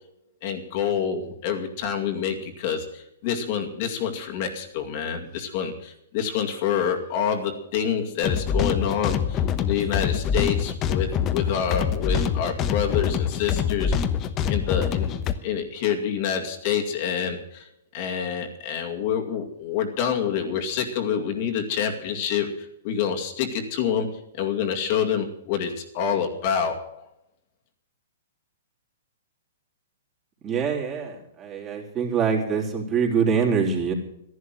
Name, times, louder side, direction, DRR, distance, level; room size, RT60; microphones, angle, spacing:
voice 1, 0.4-13.9 14.5-15.2 15.4-17.7 17.9-27.0, left 8 dB, 50° left, 3 dB, 2.3 m, -27 dB
sound 1, 8.2-15.3, left 7 dB, 30° left, 1.1 m, -25 dB
voice 2, 30.4-33.9, right 6 dB, 25° right, -1 dB, 3.6 m, -24 dB
13.0 x 11.0 x 7.7 m, 0.79 s
hypercardioid pair, 135°, 0 cm